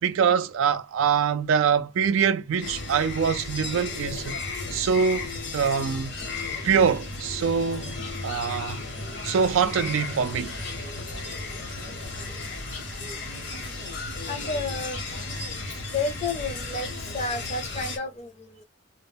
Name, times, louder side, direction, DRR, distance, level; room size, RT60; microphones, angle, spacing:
voice 1, 0.0-4.4 4.7-6.1 6.6-7.9 8.2-8.8 9.2-10.6, right 6 dB, 75° right, 0.3 m, -24 dB
sound 1, 2.6-18.0, left 3 dB, 60° left, 0.8 m, -34 dB
voice 2, 14.3-15.0 15.9-18.6, left 3 dB, 35° left, 0.6 m, -31 dB
2.1 x 2.0 x 3.3 m
head